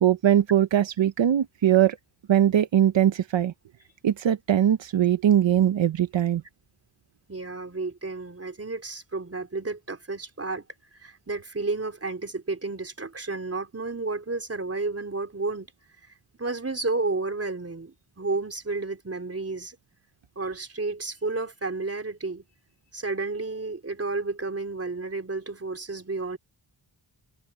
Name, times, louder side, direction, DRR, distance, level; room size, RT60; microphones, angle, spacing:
voice 1, 0.0-2.0 2.3-3.5 4.0-6.4, right 10 dB, 85° right, 0.8 m, -21 dB
voice 2, 7.3-10.6 11.0-15.7 16.4-19.8 20.4-22.4 22.9-26.4, right 3 dB, 30° right, 3.6 m, -31 dB
wide cardioid pair, 100°, 44 cm